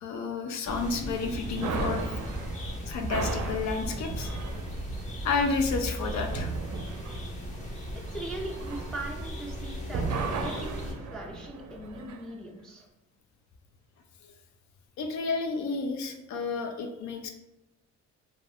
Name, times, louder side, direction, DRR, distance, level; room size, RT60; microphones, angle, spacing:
voice 1, 0.0-2.1 2.9-4.5 5.2-6.5 15.0-17.3, left 4 dB, 70° left, 5 dB, 0.5 m, -31 dB
sound 1, 0.6-10.9, equal, 25° left, 0.8 m, -37 dB
sound 2, 1.6-9.6 9.9-12.2, right 4 dB, 70° right, 0.5 m, -36 dB
voice 2, 8.1-12.9, right 1 dB, 5° left, -1 dB, 0.3 m, -40 dB
2.4 x 2.1 x 3.4 m, 0.94 s
cardioid pair, 90°, 30 cm